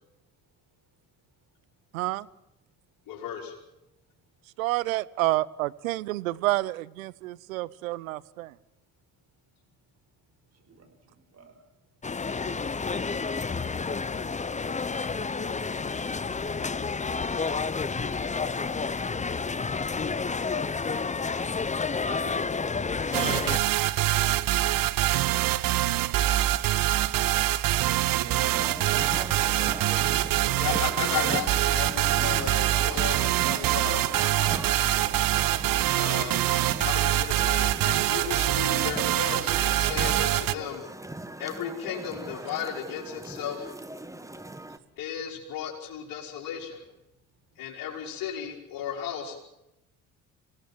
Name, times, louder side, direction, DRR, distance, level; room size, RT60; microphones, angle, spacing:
voice 1, 1.9-2.3 4.6-8.6, right 18 dB, 80° right, 19 dB, 0.7 m, -29 dB
voice 2, 3.1-3.5 30.6-34.0 34.4-34.6 35.9-36.4 36.8-40.8 41.4-43.7 45.0-46.8 47.6-49.4, left 8 dB, 55° left, -1 dB, 5.0 m, -35 dB
voice 3, 10.5-11.6 22.0-22.5 28.1-28.6 28.9-29.7 32.0-32.2, right 5 dB, 40° right, 6 dB, 5.5 m, -47 dB
sound 1, 12.0-23.6, left 4 dB, 20° left, 1.0 m, -30 dB
sound 2, 23.1-40.5, right 14 dB, 55° right, 1.0 m, -25 dB
sound 3, 28.5-44.8, right 1 dB, 10° right, 1.8 m, -40 dB
26.0 x 17.5 x 7.5 m, 0.90 s
hypercardioid pair, 55°, 40 cm